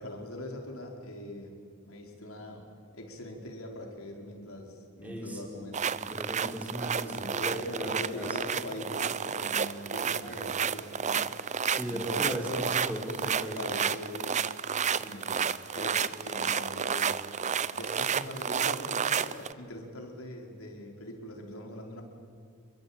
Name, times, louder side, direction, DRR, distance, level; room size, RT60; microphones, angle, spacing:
voice 1, 0.0-1.6 1.8-2.6 2.9-5.8 7.0-11.3 11.8-12.6 13.2-14.5 15.0-15.5 15.7-17.2 17.7-22.0, left 1 dB, 75° left, 2 dB, 4.8 m, -42 dB
voice 2, 5.0-5.6 5.9-8.4 10.2-10.6 11.7-13.6 14.9-15.1, equal, 5° right, -2 dB, 4.2 m, -37 dB
sound 1, 5.7-19.5, right 7 dB, 35° right, 0.7 m, -31 dB
28.5 x 23.0 x 8.9 m, 2.2 s
head